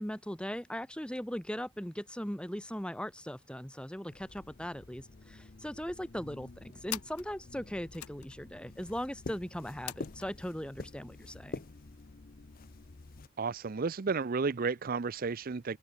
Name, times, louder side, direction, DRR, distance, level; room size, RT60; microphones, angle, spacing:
voice 1, 0.0-11.6, equal, 5° left, 1.8 m, -39 dB
sound 1, 4.1-4.4 4.7-4.8 5.0-5.7 6.3-10.3, left 13 dB, 80° left, 1.1 m, -46 dB
sound 2, 4.1-13.3, left 3 dB, 40° left, 0.6 m, -48 dB
voice 2, 13.4-15.8, right 4 dB, 40° right, 0.5 m, -32 dB
open air
head